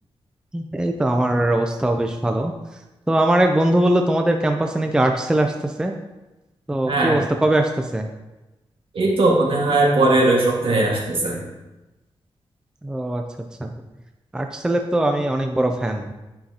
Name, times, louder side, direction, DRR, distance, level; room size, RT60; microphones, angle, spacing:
voice 1, 0.5-2.5 3.1-6.0 6.7-8.1 12.8-13.2 13.6-13.7 14.3-16.1, right 1 dB, 10° right, 4 dB, 0.4 m, -21 dB
voice 2, 6.9-7.3 8.9-11.4, right 2 dB, 65° right, -2 dB, 1.6 m, -19 dB
8.9 x 5.6 x 2.8 m, 1.1 s
wide cardioid pair, 140°, 10 cm